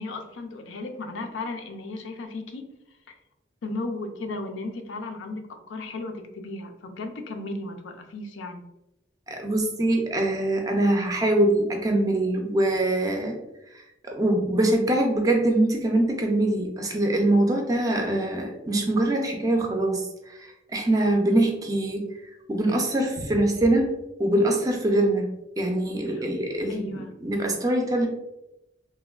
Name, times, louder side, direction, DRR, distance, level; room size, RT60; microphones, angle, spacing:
voice 1, 0.0-2.7 3.6-8.6 26.1-26.3 26.7-27.1, left 2 dB, 85° left, 5 dB, 0.4 m, -35 dB
voice 2, 9.3-13.4 14.1-20.0 20.3-20.4 20.7-22.1 22.5-23.9 24.2-28.1, right 1 dB, 20° right, 2 dB, 0.4 m, -23 dB
3.1 x 2.2 x 2.2 m, 0.90 s
head